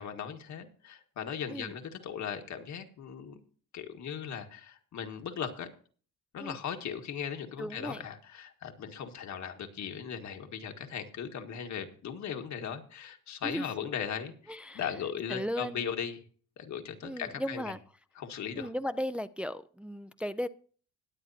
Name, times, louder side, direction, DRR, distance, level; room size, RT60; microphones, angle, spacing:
voice 1, 0.0-3.4 3.7-5.7 6.3-16.2 16.6-17.7 18.2-18.7, left 8 dB, 70° left, 1.7 m, -38 dB
voice 2, 7.6-8.0 13.4-13.7 14.5-14.9 15.3-15.8 17.0-17.8 18.6-20.5, equal, 5° right, 0.5 m, -36 dB
21.0 x 8.1 x 2.8 m
cardioid pair, 90°, 30 cm